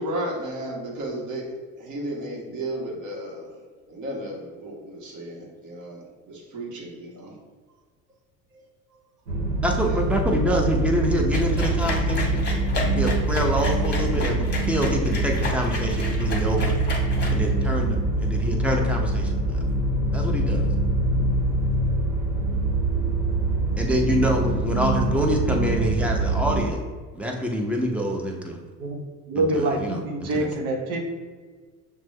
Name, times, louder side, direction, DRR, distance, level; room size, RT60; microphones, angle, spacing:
voice 1, 0.0-7.4 8.5-8.6 9.8-10.0 10.5-10.6, right 1 dB, 35° right, -2 dB, 1.2 m, -34 dB
sound 1, 9.3-26.6, right 2 dB, 85° right, 1.0 m, -24 dB
voice 2, 9.6-12.4 12.9-16.8 17.3-19.6 20.1-20.7 23.8-26.8 27.1-28.6 29.3-30.5, equal, 5° right, 1 dB, 0.6 m, -26 dB
sound 2, 11.3-17.8, left 2 dB, 20° left, 1.1 m, -32 dB
voice 3, 29.3-31.1, right 2 dB, 65° right, 1 dB, 1.0 m, -25 dB
5.9 x 2.2 x 3.2 m, 1.5 s
hypercardioid pair, 85°, 50 cm